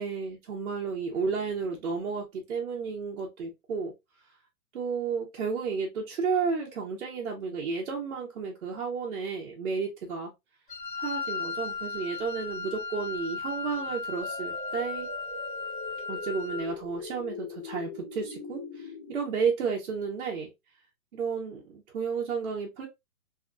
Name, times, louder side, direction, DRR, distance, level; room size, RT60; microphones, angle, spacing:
voice 1, 0.0-3.9 4.7-10.3 11.0-15.1 16.1-20.5 21.1-22.9, right 5 dB, 50° right, 0.8 m, -32 dB
Wind instrument woodwind instrument, 10.7-16.7, left 4 dB, 35° left, 0.6 m, -36 dB
sound 1, 14.2-19.2, left 3 dB, 5° left, 0.8 m, -41 dB
2.8 x 2.3 x 2.4 m
hypercardioid pair, 170°, 46 cm